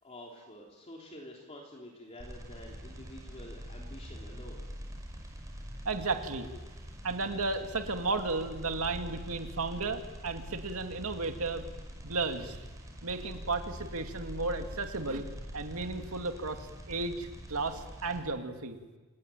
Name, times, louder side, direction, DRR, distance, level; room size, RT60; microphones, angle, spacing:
voice 1, 0.0-4.6, left 1 dB, 30° left, -2 dB, 3.3 m, -48 dB
sound 1, 2.2-18.2, equal, 15° right, 5.5 m, -44 dB
voice 2, 5.8-6.5 7.0-11.6 12.0-12.6 13.0-15.3 15.5-18.8, right 3 dB, 70° right, 5 dB, 2.4 m, -34 dB
28.5 x 19.0 x 9.2 m, 1.2 s
head